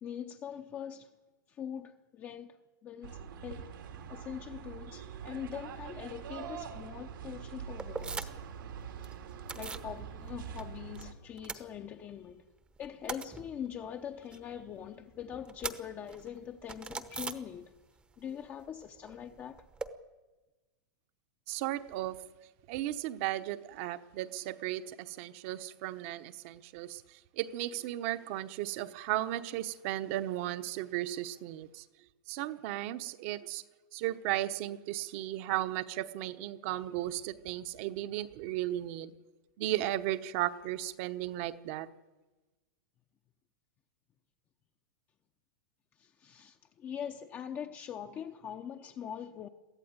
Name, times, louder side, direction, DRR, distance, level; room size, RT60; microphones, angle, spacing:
voice 1, 0.0-1.1 1.5-2.6 2.8-3.7 4.1-8.4 9.5-12.4 12.8-17.7 18.2-19.6 46.0-49.5, left 9 dB, 20° left, 0.8 m, -43 dB
sound 1, 3.0-11.1, right 7 dB, 85° right, 3.3 m, -44 dB
sound 2, 7.8-8.6 8.8-9.9 10.3-11.0 11.3-12.3 12.6-18.0 18.3-19.9, right 4 dB, 10° right, 0.9 m, -43 dB
voice 2, 21.5-22.2 22.7-31.8 32.3-33.6 33.9-39.1 39.6-41.9, right 14 dB, 40° right, 1.0 m, -35 dB
23.0 x 15.0 x 9.6 m
supercardioid pair, 165°, 11 cm